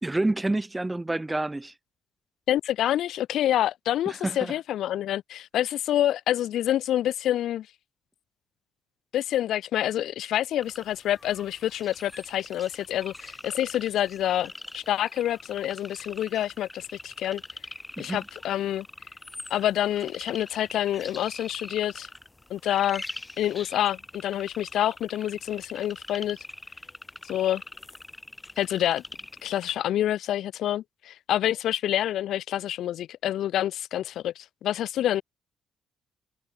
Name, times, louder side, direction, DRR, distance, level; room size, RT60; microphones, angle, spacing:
voice 1, 0.0-1.7 4.1-4.5 18.0-18.2, right 2 dB, 15° right, 0.6 m, -28 dB
voice 2, 2.5-7.7 9.1-17.4 18.0-18.9 19.5-22.1 22.5-23.0 23.4-26.4 27.2-27.6 28.6-29.0 29.4-35.2, left 12 dB, 80° left, 0.8 m, -27 dB
sound 1, 10.6-29.8, left 2 dB, 15° left, 1.3 m, -43 dB
cardioid pair, 90°, 0 cm